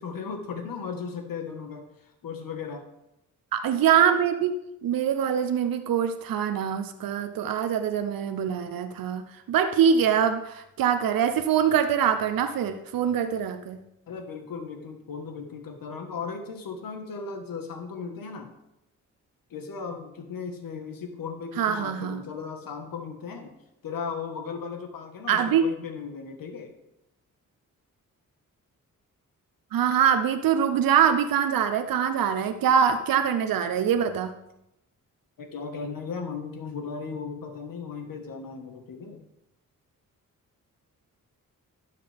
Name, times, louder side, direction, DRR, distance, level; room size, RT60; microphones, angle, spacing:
voice 1, 0.0-2.8 14.1-18.5 19.5-23.5 23.8-26.7 35.4-39.3, left 5 dB, 80° left, 5 dB, 1.5 m, -36 dB
voice 2, 3.5-4.5 4.8-13.8 21.6-22.2 25.3-25.6 29.7-34.3, right 8 dB, 85° right, 8 dB, 0.7 m, -24 dB
12.0 x 7.5 x 3.5 m, 0.85 s
cardioid pair, 85°, 34 cm